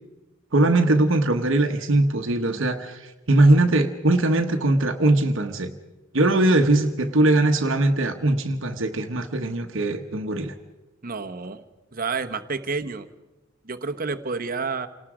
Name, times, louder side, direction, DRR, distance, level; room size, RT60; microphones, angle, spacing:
voice 1, 0.5-5.7 6.1-10.5, right 2 dB, 65° right, 4 dB, 1.2 m, -21 dB
voice 2, 11.0-11.6 11.9-13.1 13.6-14.9, right 4 dB, 40° right, 9 dB, 1.1 m, -29 dB
28.5 x 19.0 x 5.0 m, 1.1 s
head